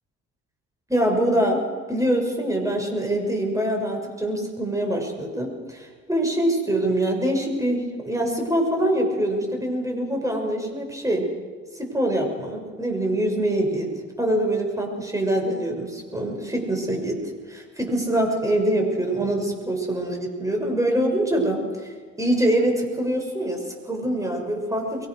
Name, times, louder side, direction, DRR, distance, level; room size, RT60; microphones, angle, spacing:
voice 1, 0.9-11.3 11.7-17.2 17.5-21.9 22.2-25.1, right 1 dB, 10° right, 2 dB, 6.4 m, -24 dB
23.5 x 23.0 x 6.5 m, 1.5 s
cardioid pair, 90°, 30 cm